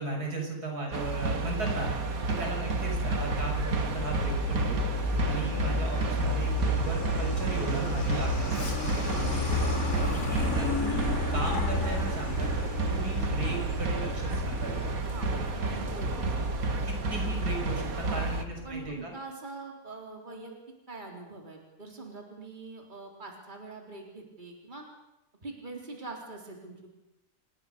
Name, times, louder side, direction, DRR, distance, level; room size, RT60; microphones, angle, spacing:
voice 1, 0.0-6.5 6.8-9.4 9.9-10.0 10.3-12.5 12.9-14.9 16.9-19.1, right 2 dB, 80° right, 1 dB, 7.1 m, -37 dB
sound 1, 0.9-18.5, right 3 dB, 65° right, 2.2 m, -31 dB
Truck, 2.8-19.0, left 2 dB, 50° left, 2.7 m, -33 dB
voice 2, 15.1-16.4 18.0-18.3 18.6-20.5 20.9-24.9 25.4-26.9, right 3 dB, 30° right, 1 dB, 4.0 m, -43 dB
28.0 x 21.5 x 6.8 m, 0.90 s
omnidirectional pair, 1.6 m